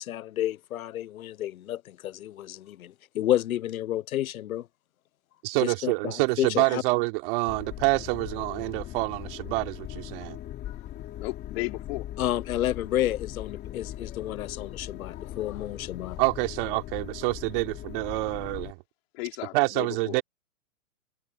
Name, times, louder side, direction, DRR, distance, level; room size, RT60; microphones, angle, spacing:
voice 1, 0.0-4.7 5.6-6.8 10.7-10.8 12.2-16.2, left 12 dB, 70° left, 0.9 m, -30 dB
voice 2, 5.4-10.4 16.2-18.8 19.5-20.2, right 25 dB, 40° right, 3.1 m, -27 dB
sound 1, 7.5-18.7, left 12 dB, 20° left, 3.7 m, -40 dB
voice 3, 11.2-12.1 19.1-20.2, left 22 dB, 45° left, 3.8 m, -35 dB
hypercardioid pair, 145°, 43 cm